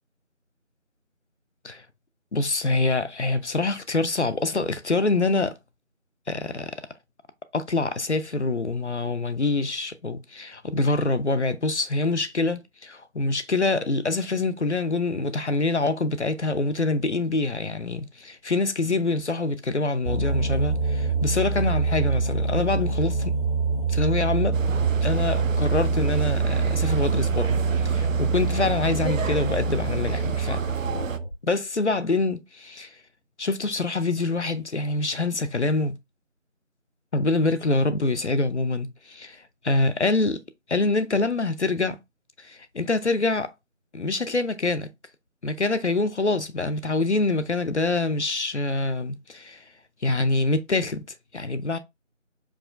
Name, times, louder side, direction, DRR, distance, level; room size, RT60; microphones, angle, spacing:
voice 1, 2.3-5.6 6.3-6.8 7.5-23.3 23.9-24.6 25.0-27.6 27.8-30.6 31.4-32.9 33.4-36.0 37.1-40.4 40.7-42.0 42.4-43.5 43.9-44.9 45.4-49.6 50.0-51.0 51.3-51.8, left 3 dB, 60° left, 0.5 m, -25 dB
sound 1, 20.0-31.3, right 4 dB, 85° left, 2.2 m, -25 dB
sound 2, 24.5-31.2, right 6 dB, 80° right, 0.5 m, -32 dB
4.7 x 2.2 x 2.4 m
figure-of-eight pair, 180°, 39 cm